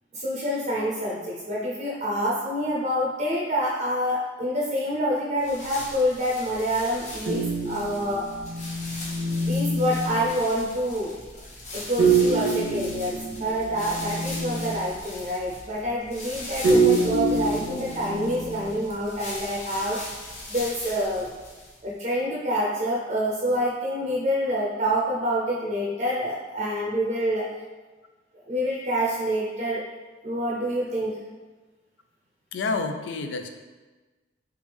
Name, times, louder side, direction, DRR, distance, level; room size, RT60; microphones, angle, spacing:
voice 1, 0.1-8.3 9.5-11.2 11.7-20.0 20.5-21.3 21.8-27.5 28.5-29.8 30.2-31.2, equal, 40° right, -4 dB, 0.5 m, -27 dB
sound 1, 5.4-21.9, left 1 dB, 40° left, 0.8 m, -40 dB
sound 2, 7.3-10.4 12.0-14.9 16.6-18.8, right 3 dB, 85° right, 0.8 m, -25 dB
voice 2, 32.5-33.5, left 3 dB, 90° left, 7 dB, 0.4 m, -28 dB
3.4 x 3.1 x 3.4 m, 1.3 s
head